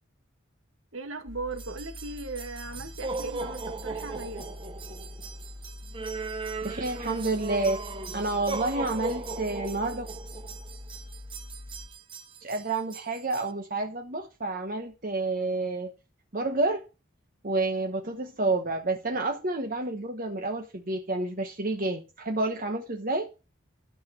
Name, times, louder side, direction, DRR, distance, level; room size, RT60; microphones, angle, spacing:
voice 1, 0.9-4.4, right 3 dB, 75° right, 2.0 m, -38 dB
sound 1, 1.3-11.9, left 1 dB, 60° right, 2.9 m, -44 dB
sound 2, 1.6-13.5, right 3 dB, 25° right, 0.8 m, -38 dB
voice 2, 6.6-7.8 8.1-10.1 12.4-15.9 16.3-16.8 17.4-23.3, right 2 dB, 40° right, 1.1 m, -29 dB
12.0 x 6.1 x 6.0 m
head